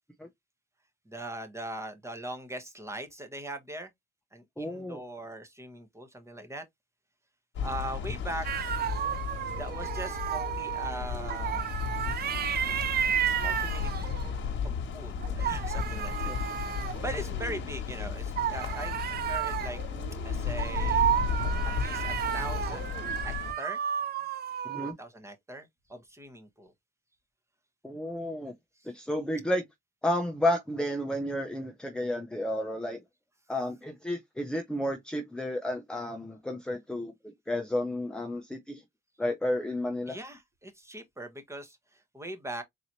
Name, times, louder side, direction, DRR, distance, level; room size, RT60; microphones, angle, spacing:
voice 1, 1.0-3.9 4.3-6.6 7.6-8.7 9.5-11.7 13.2-14.1 14.6-19.8 20.2-21.1 21.8-22.9 23.2-23.8 24.8-26.7 28.8-28.9 40.1-42.6, right 1 dB, 15° right, 1.1 m, -41 dB
voice 2, 4.6-5.0 16.3-16.4 24.6-24.9 27.8-28.5 28.9-29.6 30.0-33.0 33.5-38.8 39.2-40.2, left 1 dB, 5° left, 0.6 m, -32 dB
sound 1, 7.5-23.5, left 6 dB, 70° left, 1.2 m, -34 dB
sound 2, 8.4-14.4 15.2-17.6 18.4-24.9, right 10 dB, 50° right, 0.5 m, -32 dB
4.0 x 2.8 x 2.9 m
cardioid pair, 90°, 20 cm